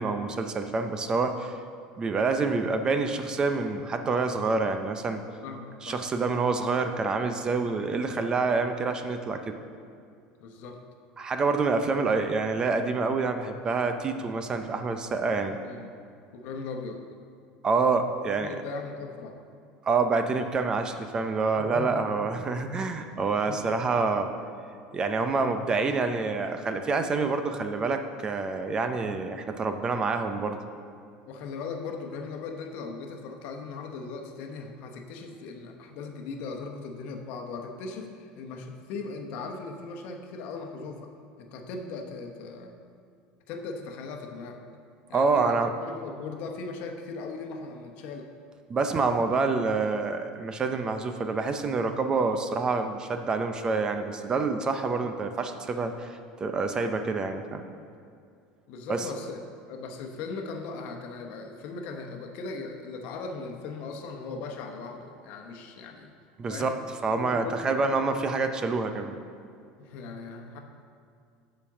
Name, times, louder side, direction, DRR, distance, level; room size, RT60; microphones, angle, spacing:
voice 1, 0.0-1.6 2.0-5.2 5.8-9.6 11.2-15.6 17.6-18.6 19.8-24.3 24.9-30.6 45.1-45.7 48.7-57.6 58.9-59.1 66.4-66.8 67.0-69.2, right 4 dB, 25° right, 7 dB, 0.5 m, -27 dB
voice 2, 5.4-6.0 10.4-10.8 15.6-16.0 16.3-17.0 18.4-19.4 21.6-22.1 23.4-23.6 31.3-41.1 41.4-42.7 43.5-44.6 45.1-48.3 58.7-59.4 59.7-66.1 66.5-66.8 67.1-67.8 69.8-70.6, left 4 dB, 60° left, 3 dB, 1.0 m, -38 dB
7.3 x 5.2 x 7.2 m, 2.4 s
supercardioid pair, 140°, 3 cm